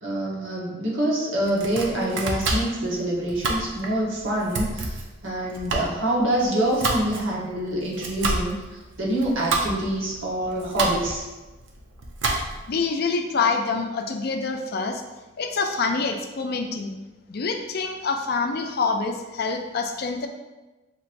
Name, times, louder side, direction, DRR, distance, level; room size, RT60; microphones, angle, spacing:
voice 1, 0.0-11.2, right 1 dB, 90° right, -4 dB, 1.1 m, -26 dB
Domestic sounds home sounds, 1.4-12.8, right 2 dB, 70° right, 0.6 m, -29 dB
voice 2, 12.7-15.0 15.4-16.9 17.3-20.3, left 4 dB, 55° left, 5 dB, 0.4 m, -26 dB
5.8 x 3.0 x 2.6 m, 1.1 s
head